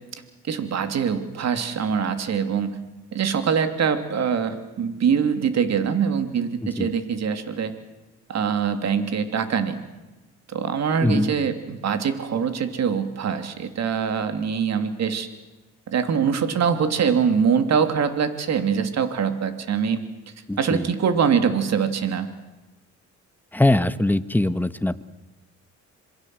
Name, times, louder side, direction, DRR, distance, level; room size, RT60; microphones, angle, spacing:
voice 1, 0.5-2.8 3.1-7.7 8.3-9.8 10.5-15.3 15.9-20.0 20.6-22.3, right 6 dB, 60° right, 9 dB, 3.1 m, -23 dB
voice 2, 20.5-20.8 23.5-25.0, left 1 dB, 5° left, 13 dB, 1.3 m, -21 dB
27.5 x 22.0 x 7.9 m, 1.1 s
cardioid pair, 90°, 30 cm